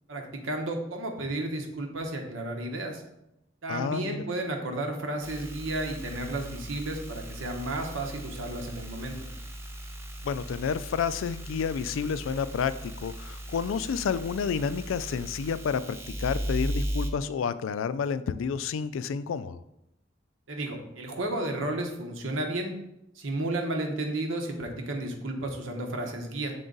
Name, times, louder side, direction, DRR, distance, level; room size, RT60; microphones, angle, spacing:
voice 1, 0.1-3.0 3.6-9.3 20.5-22.7 23.1-26.5, right 1 dB, 85° right, 2 dB, 1.1 m, -32 dB
voice 2, 3.7-4.2 10.2-19.6, left 6 dB, 85° left, 14 dB, 0.3 m, -30 dB
sound 1, 5.2-17.1, equal, 15° right, 0.6 m, -37 dB
6.8 x 3.8 x 3.9 m, 0.85 s
head